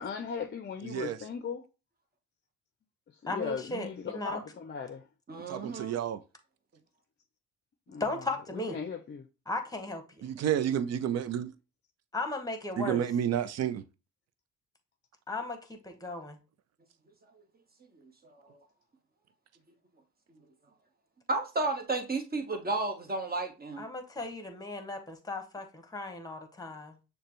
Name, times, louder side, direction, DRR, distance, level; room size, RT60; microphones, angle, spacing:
voice 1, 0.0-1.6 3.2-5.0 7.9-8.3 8.5-9.3, left 6 dB, 35° left, 0.6 m, -38 dB
voice 2, 0.8-1.2 5.5-6.2 10.2-11.5 12.8-13.8, right 10 dB, 55° right, 0.5 m, -30 dB
voice 3, 3.3-4.4 8.0-8.8 9.5-10.3 12.1-13.0 15.3-16.4 23.8-27.0, left 2 dB, 10° left, 1.2 m, -36 dB
voice 4, 5.3-6.0 21.3-23.9, right 2 dB, 30° right, 1.2 m, -32 dB
6.5 x 2.3 x 3.0 m
supercardioid pair, 60°, 31 cm